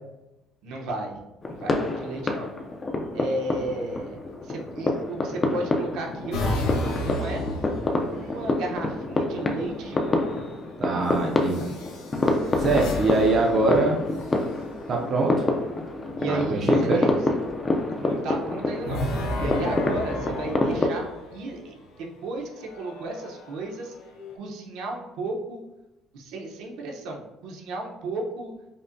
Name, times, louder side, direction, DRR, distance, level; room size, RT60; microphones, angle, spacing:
voice 1, 0.6-1.2 1.5-2.5 3.1-4.2 4.4-7.4 8.1-10.2 16.2-17.1 18.0-19.1 19.4-21.1 21.3-23.9 24.3-25.6 26.1-28.5, right 2 dB, 75° right, 0 dB, 0.8 m, -33 dB
sound 1, 1.4-20.9, left 2 dB, 20° left, 0.4 m, -27 dB
sound 2, 6.3-8.6 9.8-10.3 11.4-14.8 18.8-21.8 22.5-24.4, left 1 dB, 85° left, 0.7 m, -33 dB
voice 2, 10.8-11.8 12.6-14.0 14.9-15.4 16.3-17.0, right 3 dB, 35° right, 0 dB, 0.4 m, -23 dB
5.3 x 2.1 x 2.6 m, 0.96 s
cardioid pair, 150°, 0 cm